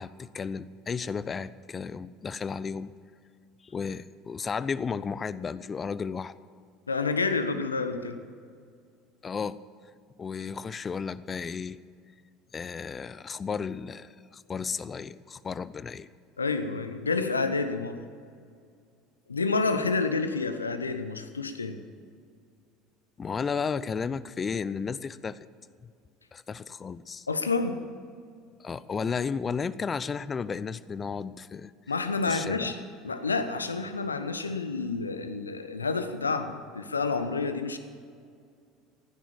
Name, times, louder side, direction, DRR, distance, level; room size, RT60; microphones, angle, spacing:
voice 1, 0.0-2.9 3.6-6.3 9.2-9.6 10.2-11.8 12.5-16.1 23.2-25.4 26.3-27.3 28.6-31.7 32.3-32.7, left 5 dB, 30° left, 17 dB, 0.6 m, -33 dB
voice 2, 6.9-8.2 16.4-18.0 19.3-21.8 27.3-27.8 31.9-32.8 33.0-37.8, left 4 dB, 85° left, 10 dB, 0.9 m, -29 dB
15.5 x 10.0 x 7.2 m, 2.3 s
figure-of-eight pair, 70°, 0 cm